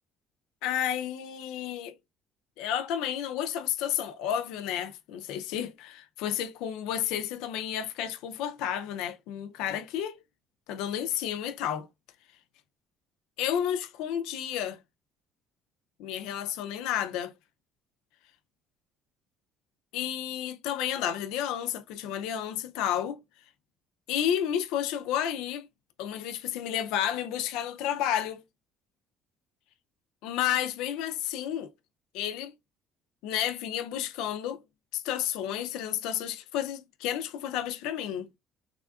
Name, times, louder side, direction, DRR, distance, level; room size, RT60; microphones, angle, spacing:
voice 1, 0.6-2.0 2.6-10.2 10.7-11.9 13.4-14.8 16.0-17.3 19.9-23.2 24.1-25.7 26.0-28.4 30.2-31.7 32.1-32.5 33.2-34.6 34.9-38.4, left 10 dB, 80° left, 0.4 m, -31 dB
3.5 x 2.3 x 2.2 m
cardioid pair, 135°, 0 cm